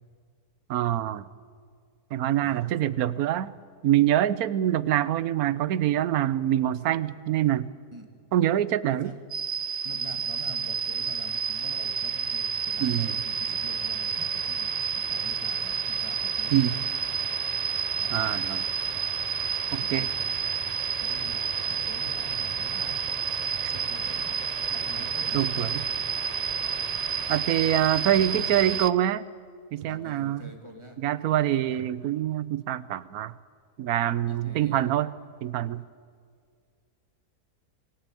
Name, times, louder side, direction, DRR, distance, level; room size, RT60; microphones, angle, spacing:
voice 1, 0.7-1.2 2.1-3.5 3.8-7.7 8.3-9.1 12.8-13.1 16.5-16.7 18.1-18.7 19.7-20.1 23.6-23.7 25.3-25.8 27.3-29.2 29.7-30.5 31.0-33.3 33.8-35.1 35.4-35.8, right 12 dB, 70° right, 17 dB, 1.2 m, -25 dB
voice 2, 2.4-2.8 7.9-8.1 8.9-9.2 9.8-14.7 15.0-16.7 18.0-18.1 19.8-20.1 21.0-21.4 21.7-23.0 23.7-24.3 24.7-25.7 29.9-31.0 34.3-34.9, right 1 dB, 15° right, 3 dB, 2.5 m, -44 dB
sound 1, 9.3-28.9, right 6 dB, 85° right, 0.3 m, -30 dB
25.0 x 16.0 x 9.1 m, 2.1 s
omnidirectional pair, 1.7 m